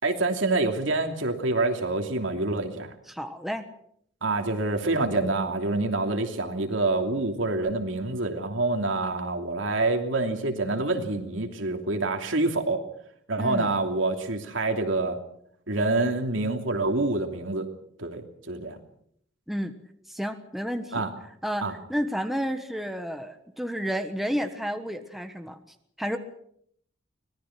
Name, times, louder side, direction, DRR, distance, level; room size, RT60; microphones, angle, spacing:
voice 1, 0.0-2.9 4.2-12.8 13.3-15.2 15.7-17.7 18.0-18.8 20.9-21.1 21.6-21.7, right 2 dB, 75° right, 4 dB, 2.9 m, -26 dB
voice 2, 3.1-3.7 13.4-13.7 19.5-19.7 20.1-21.1 21.4-25.6 26.0-26.2, equal, ahead, 6 dB, 1.3 m, -31 dB
24.5 x 19.0 x 6.0 m, 0.68 s
head